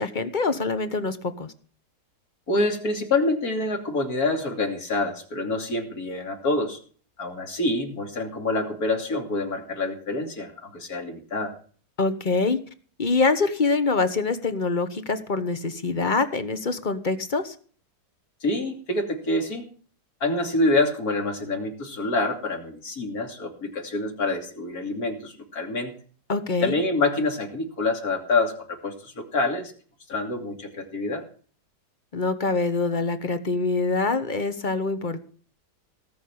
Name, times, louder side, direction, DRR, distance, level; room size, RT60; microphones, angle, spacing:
voice 1, 0.0-1.5 12.0-12.6 13.0-17.5 26.3-26.8 32.1-35.2, left 3 dB, 30° left, 11 dB, 1.2 m, -25 dB
voice 2, 2.5-6.8 7.2-11.5 18.4-19.7 20.2-25.9 26.6-29.7 30.1-31.2, left 2 dB, 55° left, 4 dB, 3.2 m, -26 dB
18.5 x 6.2 x 8.7 m, 0.43 s
omnidirectional pair, 1.9 m